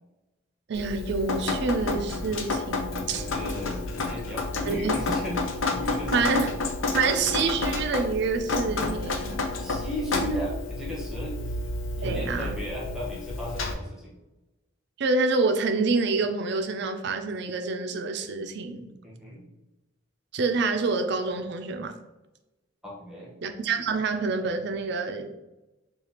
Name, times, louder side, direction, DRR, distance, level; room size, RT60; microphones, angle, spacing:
Drip, 0.7-13.7, left 3 dB, 85° left, 0.5 m, -30 dB
voice 1, 0.7-3.2 4.7-5.0 6.1-6.5 6.9-9.4 12.0-12.6 15.0-18.9 20.3-22.0 23.4-25.4, right 4 dB, 60° right, 0.4 m, -27 dB
voice 2, 3.1-6.5 9.6-11.6 12.0-14.2 19.0-19.4 22.8-23.3, equal, 5° right, 1.0 m, -36 dB
4.8 x 2.4 x 2.9 m
head